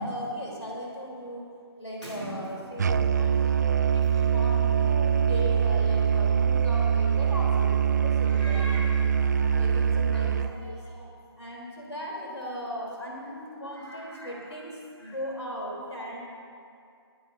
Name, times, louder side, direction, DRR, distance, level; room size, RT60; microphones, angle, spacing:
voice 1, 0.0-11.1 11.4-16.2, equal, 90° left, -3 dB, 3.6 m, -37 dB
Musical instrument, 2.8-10.6, right 7 dB, 40° right, 0.3 m, -23 dB
22.0 x 10.5 x 2.7 m, 2.4 s
figure-of-eight pair, 140°, 14 cm